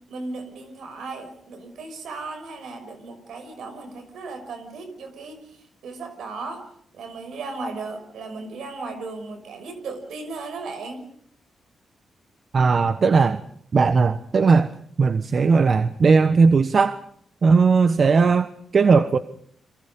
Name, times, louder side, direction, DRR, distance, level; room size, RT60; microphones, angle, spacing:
voice 1, 0.1-11.1, right 3 dB, 80° right, 8 dB, 5.8 m, -36 dB
voice 2, 12.5-13.4 13.7-14.7 15.0-17.0 17.4-19.2, right 4 dB, 55° right, 11 dB, 1.2 m, -18 dB
30.0 x 23.5 x 5.3 m, 0.66 s
cardioid pair, 60°, 0 cm